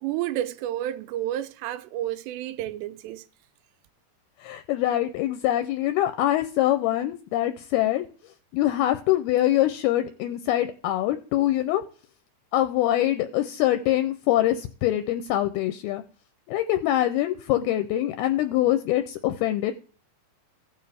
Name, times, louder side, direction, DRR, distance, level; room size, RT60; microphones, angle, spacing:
voice 1, 0.0-3.2, right 12 dB, 85° right, 2.8 m, -30 dB
voice 2, 4.4-11.8 12.5-16.0 16.5-19.7, left 13 dB, 80° left, 2.3 m, -24 dB
16.5 x 6.8 x 3.4 m
omnidirectional pair, 4.9 m